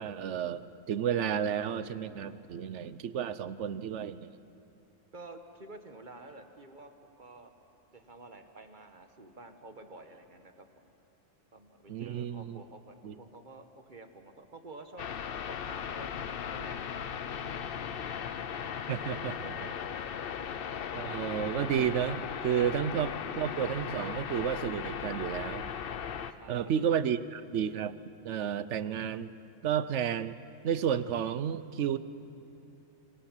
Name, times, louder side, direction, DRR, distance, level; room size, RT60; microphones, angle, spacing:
voice 1, 0.0-4.3 11.9-12.6 13.0-13.1 18.9-19.6 20.9-25.7 26.5-28.0 28.2-29.3 29.6-30.4 30.6-32.0, right 8 dB, 65° right, 14 dB, 0.9 m, -32 dB
voice 2, 5.1-6.9 7.2-7.5 7.9-10.7 11.5-15.1 15.4-16.1 16.5-19.3 19.6-19.8 20.1-20.3 26.3-26.6, right 2 dB, 35° right, 7 dB, 1.4 m, -51 dB
sound 1, 15.0-26.3, left 7 dB, 50° left, 0.7 m, -37 dB
25.5 x 18.0 x 7.3 m, 2.8 s
omnidirectional pair, 1.4 m